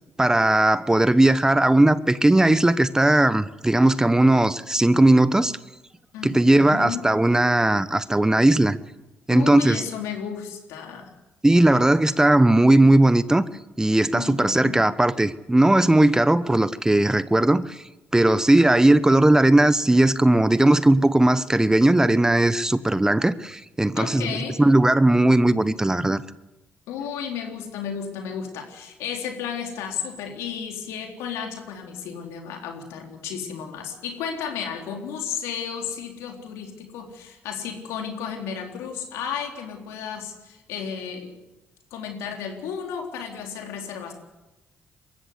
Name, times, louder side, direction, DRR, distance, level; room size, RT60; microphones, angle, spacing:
voice 1, 0.2-5.5 6.2-8.8 9.3-9.8 11.4-13.4 13.8-17.8 18.1-26.2, right 1 dB, 15° right, 1.1 m, -18 dB
voice 2, 6.1-7.1 9.3-11.1 14.1-14.8 24.0-24.6 26.9-41.3 41.9-44.1, left 7 dB, 85° left, 3.9 m, -33 dB
22.0 x 15.5 x 9.8 m
supercardioid pair, 65°, 5 cm